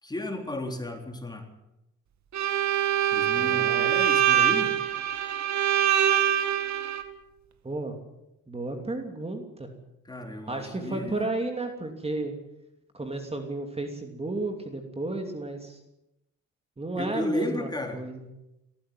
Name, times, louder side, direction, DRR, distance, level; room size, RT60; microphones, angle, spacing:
voice 1, 0.0-1.5 3.1-4.7 10.1-11.3 17.0-18.0, left 1 dB, 15° left, 4 dB, 3.9 m, -33 dB
Bowed string instrument, 2.3-7.0, right 10 dB, 65° right, 2.1 m, -24 dB
voice 2, 3.1-4.5 7.6-8.0 8.5-9.7 10.5-12.3 12.9-15.8 16.8-18.3, right 2 dB, 20° right, 5 dB, 3.0 m, -33 dB
19.0 x 15.0 x 9.5 m, 0.89 s
cardioid pair, 90°, 30 cm